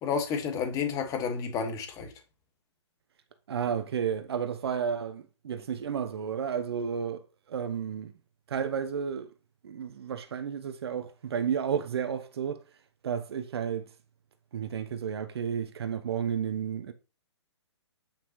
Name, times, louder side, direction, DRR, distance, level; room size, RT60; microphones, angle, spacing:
voice 1, 0.0-2.1, left 6 dB, 20° left, 1.8 m, -30 dB
voice 2, 3.5-7.2 7.5-8.1 8.5-9.3 9.6-12.6 13.0-13.9 14.5-16.9, right 7 dB, 60° right, 0.9 m, -32 dB
8.4 x 5.9 x 3.1 m
hypercardioid pair, 135°, 15 cm